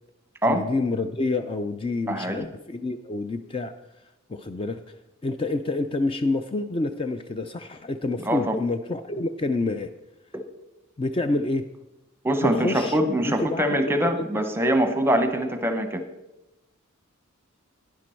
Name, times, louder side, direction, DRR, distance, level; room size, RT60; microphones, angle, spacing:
voice 1, 0.4-3.7 4.3-4.8 5.2-9.9 11.0-11.6 12.4-13.0 13.2-14.3, left 2 dB, 25° left, 9 dB, 0.4 m, -28 dB
voice 2, 2.1-2.5 8.2-8.6 10.3-10.4 12.2-16.0, equal, 10° right, 7 dB, 0.9 m, -23 dB
11.0 x 10.5 x 4.5 m, 0.96 s
head